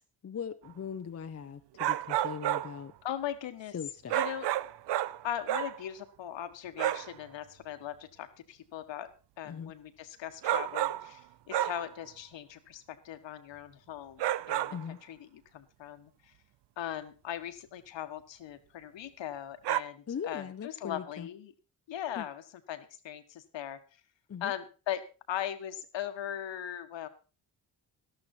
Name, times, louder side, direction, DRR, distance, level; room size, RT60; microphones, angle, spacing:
voice 1, 0.2-2.9 3.7-4.1 9.4-9.7 14.7-15.0 20.1-21.3 22.2-22.3 24.3-24.5, left 7 dB, 30° left, 8 dB, 0.8 m, -40 dB
sound 1, 1.8-2.8 4.1-5.8 6.8-7.1 10.4-11.2 11.5-11.9 14.2-14.8 19.6-19.8, right 13 dB, 65° right, 0.6 m, -30 dB
voice 2, 3.0-3.7 4.1-4.5 5.2-9.1 9.4-14.8 15.0-16.3 16.8-21.5 21.9-22.4 22.7-23.8 24.4-27.1, left 10 dB, 70° left, 9 dB, 1.6 m, -39 dB
12.0 x 12.0 x 4.4 m, 0.34 s
supercardioid pair, 70°, 46 cm